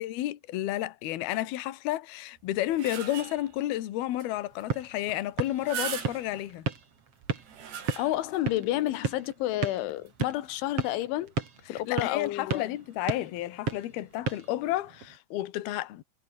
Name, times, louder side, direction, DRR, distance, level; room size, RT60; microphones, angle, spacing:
voice 1, 0.0-6.7 11.7-16.0, left 14 dB, 65° left, 3.2 m, -31 dB
sound 1, 2.4-3.6 4.2-4.3 4.6-4.7 5.4-6.5 7.2-8.4 8.9-9.0 10.1-10.2, right 8 dB, 65° right, 5.5 m, -39 dB
sound 2, 4.3-15.2, right 5 dB, 35° right, 3.4 m, -36 dB
voice 2, 8.0-11.3 11.7-12.7, left 15 dB, 90° left, 3.8 m, -30 dB
omnidirectional pair, 5.3 m